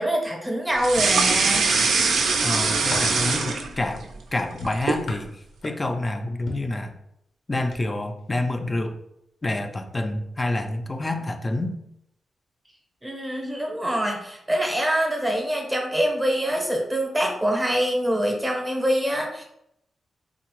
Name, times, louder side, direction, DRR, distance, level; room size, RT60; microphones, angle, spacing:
voice 1, 0.0-1.7 13.0-19.4, equal, 15° right, 1 dB, 0.7 m, -25 dB
sound 1, 0.8-4.0 4.4-5.1, right 4 dB, 85° right, 0.4 m, -22 dB
voice 2, 2.4-4.1 4.3-6.9 7.5-9.0 9.4-11.8, left 2 dB, 20° left, 6 dB, 0.3 m, -28 dB
sound 2, 2.9-3.2 4.6-6.0 6.5-6.8 7.6-7.8 8.2-8.4, left 2 dB, 75° left, 0.6 m, -37 dB
3.6 x 2.0 x 2.9 m, 0.78 s
wide cardioid pair, 110°, 0 cm